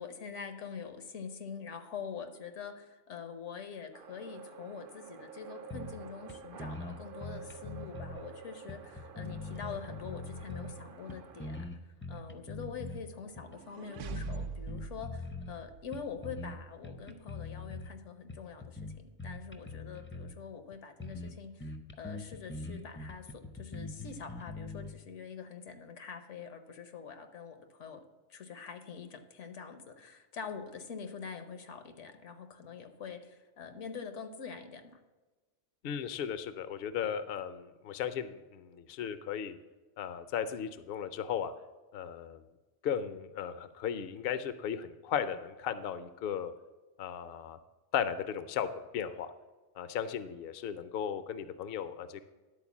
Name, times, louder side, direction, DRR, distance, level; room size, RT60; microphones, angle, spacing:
voice 1, 0.0-11.7 12.1-28.0 28.3-35.0, left 6 dB, 80° left, 8 dB, 1.2 m, -45 dB
sound 1, 3.9-11.6, right 7 dB, 55° right, 0.7 m, -50 dB
sound 2, 5.7-6.0 6.3-6.4 6.6-8.2 8.7-10.8 11.1-13.0 13.4-13.5 13.9-15.6 15.9-16.6 16.8-17.9 18.3-20.4 20.7-20.8 21.0-21.3 21.6-24.9, left 2 dB, 15° left, 0.4 m, -42 dB
sound 3, 13.1-16.3, right 5 dB, 85° right, 1.0 m, -43 dB
voice 2, 35.8-39.6 40.0-41.5 41.9-42.4 42.8-46.5 47.0-47.6 47.9-48.7 48.9-49.3 49.8-52.2, left 8 dB, 60° left, 12 dB, 0.7 m, -36 dB
11.0 x 4.4 x 7.1 m, 1.2 s
omnidirectional pair, 1.2 m